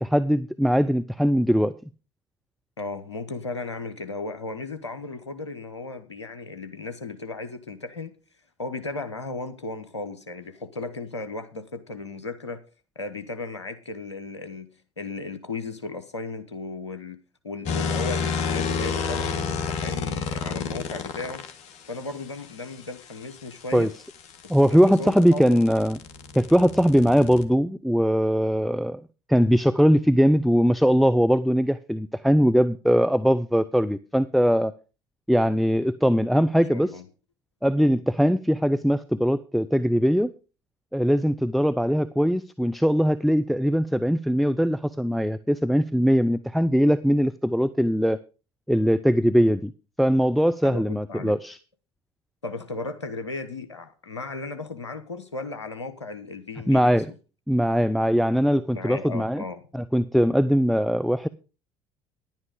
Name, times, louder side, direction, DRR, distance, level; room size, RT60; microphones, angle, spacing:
voice 1, 0.0-1.7 23.7-23.9 24.5-26.0 26.3-29.0 29.3-34.7 35.3-37.0 37.6-40.3 40.9-48.2 48.7-49.7 50.0-51.6 56.7-57.1 57.5-59.4 59.7-61.3, equal, ahead, 0.5 m, -21 dB
voice 2, 2.8-8.1 8.6-12.6 12.9-14.7 15.0-17.2 17.4-21.4 21.9-23.9 24.7-25.6 36.7-37.0 50.6-51.4 52.4-56.9 58.7-59.6, left 3 dB, 85° left, 1.2 m, -35 dB
sound 1, 17.7-21.5 23.8-27.5, left 5 dB, 55° left, 1.6 m, -30 dB
11.0 x 8.9 x 5.0 m
figure-of-eight pair, 60°, 14 cm